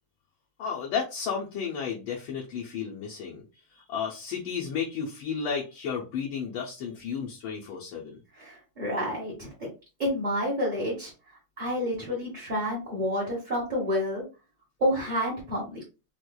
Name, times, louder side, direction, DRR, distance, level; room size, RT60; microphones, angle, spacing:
voice 1, 0.6-3.4 3.9-8.2, left 6 dB, 70° left, -2 dB, 1.4 m, -33 dB
voice 2, 8.3-9.7 10.0-11.1 11.6-14.2 14.8-15.8, equal, 35° right, -5 dB, 0.7 m, -29 dB
4.3 x 2.4 x 2.2 m, 0.30 s
omnidirectional pair, 2.4 m